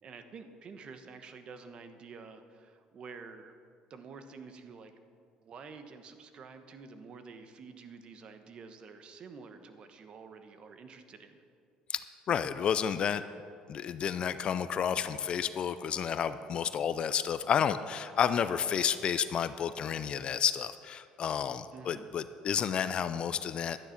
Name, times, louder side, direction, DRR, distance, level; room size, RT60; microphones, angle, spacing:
voice 1, 0.0-3.5 3.9-4.9 5.4-11.4 21.7-22.1, right 5 dB, 45° right, 8 dB, 1.1 m, -49 dB
voice 2, 12.3-13.2 13.7-23.8, left 8 dB, 45° left, 13 dB, 0.5 m, -31 dB
12.0 x 9.7 x 5.9 m, 2.3 s
cardioid pair, 115°, 2 cm